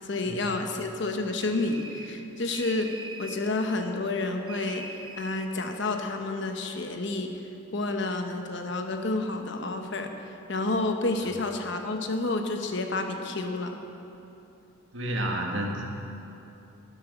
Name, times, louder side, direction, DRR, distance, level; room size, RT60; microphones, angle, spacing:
voice 1, 0.0-2.9 3.2-4.9 5.2-7.4 7.7-10.1 10.5-13.8, left 2 dB, 65° left, 5 dB, 1.0 m, -30 dB
sound 1, 1.4-2.2 2.5-3.5 4.5-5.5, right 3 dB, 25° right, 0.7 m, -43 dB
voice 2, 14.9-15.9, right 1 dB, 70° right, 0 dB, 1.8 m, -30 dB
12.0 x 10.5 x 6.1 m, 2.9 s
head